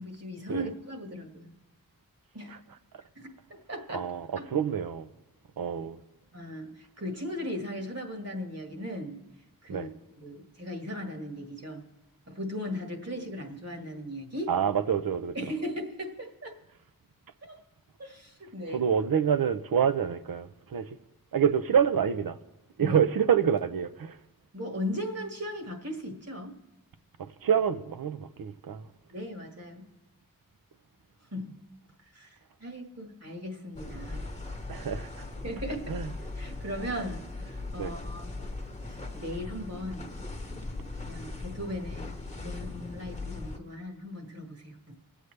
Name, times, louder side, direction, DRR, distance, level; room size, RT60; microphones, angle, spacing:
voice 1, 0.0-1.5 2.3-2.6 3.2-3.3 3.7-4.1 4.4-4.5 6.3-9.2 9.6-9.9 10.2-11.9 12.3-14.5 15.4-16.6 17.4-17.6 18.0-18.9 22.8-23.0 24.5-26.5 29.1-29.9 31.3-31.6 32.1-34.3 35.4-38.4 38.8-40.1 41.1-42.1 42.4-44.9, equal, 45° right, 1.7 m, -38 dB
voice 2, 3.9-5.1 5.6-6.0 9.7-9.9 14.5-15.4 18.7-21.0 21.3-22.4 22.8-24.2 27.2-28.9 34.7-35.3 35.9-36.1 37.8-37.9, right 8 dB, 80° right, 0.6 m, -27 dB
sound 1, 33.7-43.6, left 2 dB, 20° left, 1.1 m, -39 dB
23.5 x 8.1 x 3.3 m
wide cardioid pair, 80°, 34 cm